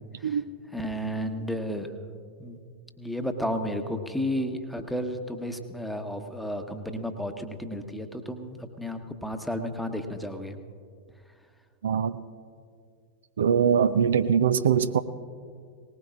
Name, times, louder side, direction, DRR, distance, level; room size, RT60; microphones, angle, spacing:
voice 1, 0.7-1.9 2.4-2.6 3.0-10.6, equal, ahead, 6 dB, 1.1 m, -32 dB
voice 2, 11.8-12.2 13.4-15.0, right 7 dB, 65° right, 13 dB, 0.4 m, -22 dB
20.0 x 19.5 x 2.5 m, 2.1 s
figure-of-eight pair, 90°, 0 cm